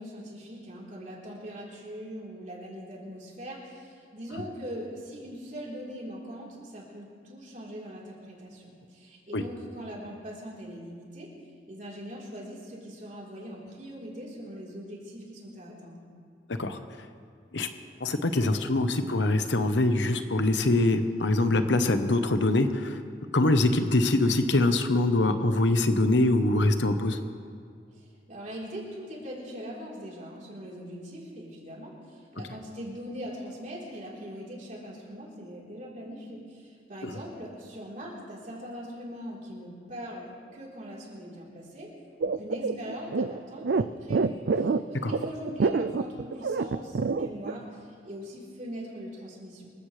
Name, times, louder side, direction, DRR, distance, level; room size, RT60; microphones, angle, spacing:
voice 1, 0.0-11.3 11.7-16.0 27.9-41.9 42.2-49.7, equal, 45° right, -4 dB, 4.0 m, -41 dB
voice 2, 18.0-23.0 23.3-27.2 37.0-37.1 45.0-45.1, left 2 dB, 80° left, 8 dB, 1.0 m, -24 dB
sound 1, 42.2-47.5, right 4 dB, 65° right, 0.4 m, -27 dB
25.5 x 15.0 x 3.4 m, 2.2 s
head